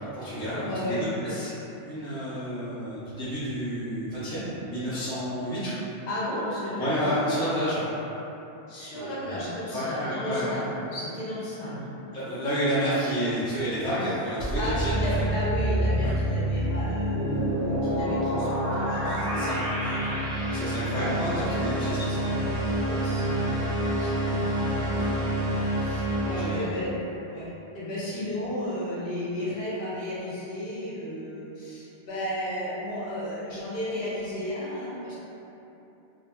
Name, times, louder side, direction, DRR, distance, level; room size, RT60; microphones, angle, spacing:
voice 1, 0.0-1.5 1.8-5.7 6.8-7.9 8.9-9.5 9.7-10.6 12.1-14.9 16.0-16.2 19.3-20.0 20.5-22.3 24.9-25.1 26.2-26.7 28.1-28.2, equal, 5° left, -12 dB, 0.5 m, -30 dB
voice 2, 0.6-1.0 6.1-6.9 8.7-11.9 14.5-20.6 21.2-24.7 25.1-25.5 25.8-26.9 27.3-27.5 27.7-35.2, left 1 dB, 60° left, -9 dB, 1.0 m, -34 dB
sound 1, 14.4-26.5, right 1 dB, 50° right, 0.5 m, -27 dB
2.8 x 2.7 x 2.2 m, 3.0 s
omnidirectional pair, 1.1 m